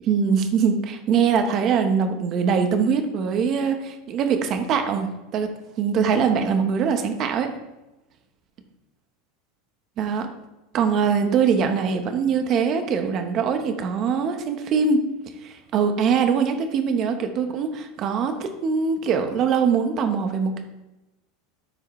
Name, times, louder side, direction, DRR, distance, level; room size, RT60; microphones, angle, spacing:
voice 1, 0.0-7.5 10.0-10.3 10.7-15.0 15.4-20.6, right 6 dB, 40° right, 7 dB, 1.1 m, -22 dB
12.5 x 4.9 x 3.3 m, 1.0 s
supercardioid pair, 130°, 0 cm